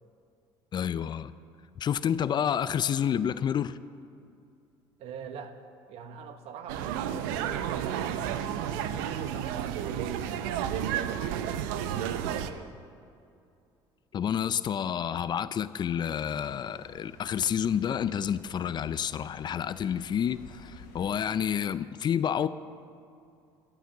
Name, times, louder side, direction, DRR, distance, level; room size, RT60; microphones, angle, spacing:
voice 1, 0.7-1.3 1.8-3.8 14.1-22.5, left 8 dB, 40° left, 15 dB, 0.5 m, -29 dB
voice 2, 5.0-5.6 5.9-9.3 9.7-12.7, right 6 dB, 65° right, 8 dB, 1.1 m, -44 dB
sound 1, 6.7-12.5, right 9 dB, 85° right, 0.7 m, -31 dB
sound 2, 16.1-21.2, left 4 dB, 90° left, 2.5 m, -52 dB
13.5 x 9.2 x 7.3 m, 2.5 s
supercardioid pair, 80°, 11 cm